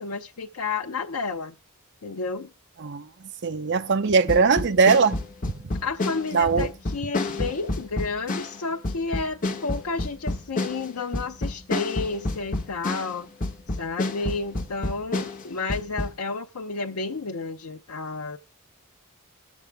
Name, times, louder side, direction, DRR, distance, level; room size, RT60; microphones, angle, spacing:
voice 1, 0.0-1.5 2.0-2.5 5.8-13.3 13.7-18.4, left 4 dB, 80° left, 0.7 m, -31 dB
voice 2, 3.4-5.2 6.3-6.7, right 5 dB, 55° right, 0.6 m, -20 dB
sound 1, 4.3-13.2 13.4-16.1, left 2 dB, 40° left, 1.1 m, -29 dB
21.0 x 7.2 x 3.4 m
head